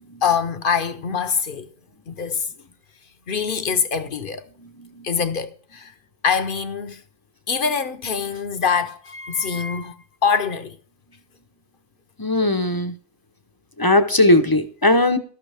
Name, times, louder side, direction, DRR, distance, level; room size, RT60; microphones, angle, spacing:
voice 1, 0.2-1.7 2.1-2.5 3.3-4.5 5.0-5.9 6.2-7.0 7.5-10.8, left 6 dB, 50° left, 0.9 m, -24 dB
voice 2, 12.2-12.9 13.8-15.2, left 1 dB, 20° left, 0.6 m, -18 dB
13.0 x 11.5 x 3.4 m
omnidirectional pair, 1.4 m